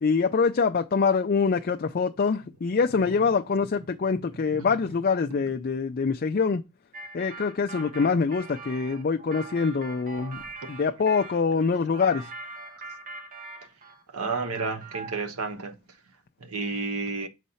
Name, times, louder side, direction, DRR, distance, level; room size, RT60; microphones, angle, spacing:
voice 1, 0.0-6.6 7.1-10.4 10.7-12.3, left 5 dB, 40° left, 0.4 m, -25 dB
sound 1, 6.9-11.4 11.9-14.0 14.3-15.3, right 3 dB, 35° right, 1.2 m, -42 dB
voice 2, 14.1-15.7 16.4-17.3, right 4 dB, 80° right, 1.1 m, -31 dB
6.3 x 4.2 x 5.6 m
head